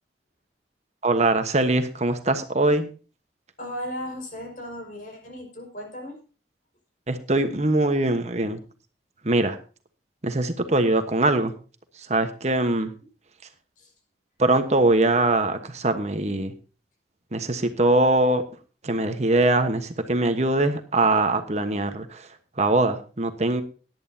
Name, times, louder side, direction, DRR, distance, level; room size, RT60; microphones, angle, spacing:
voice 1, 1.0-2.9 7.1-8.6 9.2-9.6 10.2-11.5 12.1-12.9 14.4-16.5 17.3-18.4 18.8-22.3 22.6-23.6, right 2 dB, 40° right, 8 dB, 1.2 m, -22 dB
voice 2, 3.6-6.2 13.8-13.9, equal, 50° left, 2 dB, 5.3 m, -36 dB
18.0 x 11.0 x 2.8 m, 0.34 s
head